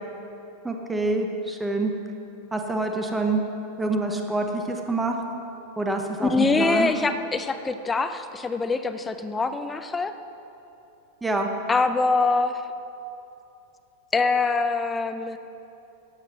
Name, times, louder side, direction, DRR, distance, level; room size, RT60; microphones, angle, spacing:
voice 1, 0.6-1.9 2.5-3.4 3.8-5.1 5.8-6.9 11.2-11.5, right 2 dB, 10° right, 3 dB, 1.0 m, -26 dB
voice 2, 6.2-10.1 11.7-12.6 14.1-15.4, left 4 dB, 15° left, 9 dB, 0.5 m, -24 dB
11.5 x 8.0 x 5.9 m, 2.8 s
figure-of-eight pair, 90°, 0 cm